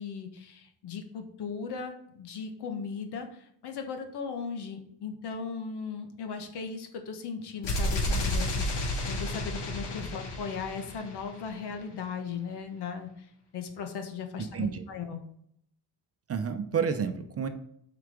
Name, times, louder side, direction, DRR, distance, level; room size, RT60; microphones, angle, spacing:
voice 1, 0.0-13.3 13.5-15.2, left 6 dB, 70° left, 5 dB, 1.5 m, -37 dB
sound 1, 7.6-11.5, left 1 dB, 90° left, 2.5 m, -31 dB
voice 2, 16.3-17.5, right 6 dB, 35° right, 8 dB, 0.7 m, -30 dB
8.0 x 4.9 x 5.1 m, 0.69 s
cardioid pair, 165°, 41 cm